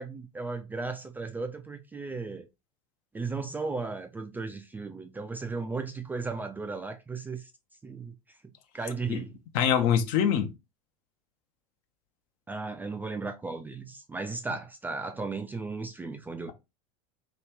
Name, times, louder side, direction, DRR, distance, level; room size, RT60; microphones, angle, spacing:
voice 1, 0.0-2.5 3.1-7.4 7.8-8.1 8.7-9.3 12.5-16.5, right 4 dB, 10° right, 0.3 m, -35 dB
voice 2, 9.5-10.5, left 8 dB, 50° left, 0.6 m, -24 dB
3.0 x 2.3 x 3.2 m
figure-of-eight pair, 80°, 18 cm